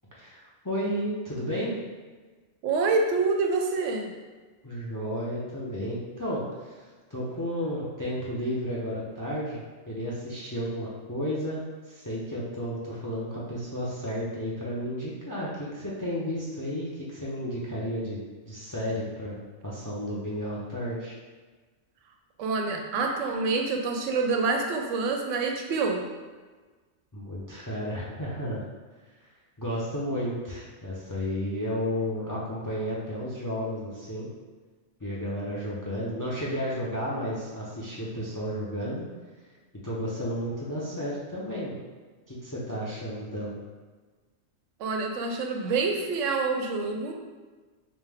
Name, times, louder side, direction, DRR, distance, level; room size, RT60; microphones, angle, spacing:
voice 1, 0.1-1.8 4.6-21.2 27.1-28.6 29.6-34.3 35.0-39.1 39.8-41.8 42.3-43.6, equal, 30° left, -6 dB, 0.4 m, -32 dB
voice 2, 2.6-4.1 22.4-26.1 44.8-47.1, right 4 dB, 90° right, 2 dB, 1.0 m, -27 dB
5.1 x 2.1 x 3.4 m, 1.4 s
omnidirectional pair, 1.3 m